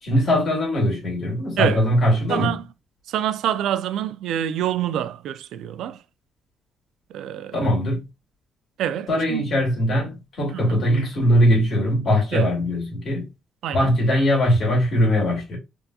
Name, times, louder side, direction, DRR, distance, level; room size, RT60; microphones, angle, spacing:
voice 1, 0.0-2.6 7.5-8.0 9.1-13.3 13.7-15.6, equal, 55° left, 1.9 m, -21 dB
voice 2, 2.3-2.6 3.1-6.0 7.1-7.7 8.8-9.4 10.5-10.9 12.3-12.5 13.6-14.0, right 11 dB, 80° right, 0.3 m, -26 dB
3.4 x 2.8 x 2.2 m
cardioid pair, 90°, 0 cm